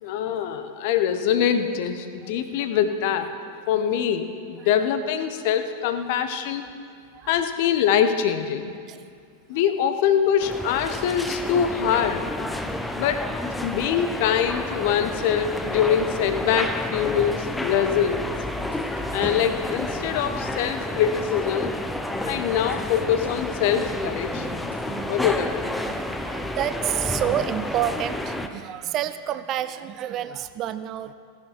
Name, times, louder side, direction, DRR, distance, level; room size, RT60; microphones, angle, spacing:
voice 1, 0.0-3.3 3.7-6.7 7.3-8.8 9.5-12.3 13.0-13.3 13.6-18.3 19.1-21.7 22.3-24.6 25.1-25.6, left 8 dB, 50° left, 9 dB, 0.8 m, -24 dB
sound 1, 10.4-28.5, left 1 dB, 5° left, 0.7 m, -30 dB
voice 2, 12.4-12.7 13.6-13.7 20.5-20.9 22.0-22.2 22.4-22.5 24.4-25.5 25.7-31.1, right 11 dB, 35° right, 13 dB, 0.4 m, -30 dB
sound 2, 18.2-19.3 19.7-20.5 21.2-21.3 22.2-23.3 23.7-24.7 25.2-25.3, right 2 dB, 70° right, 3.9 m, -45 dB
16.0 x 10.5 x 4.6 m, 2.2 s
figure-of-eight pair, 90°, 0 cm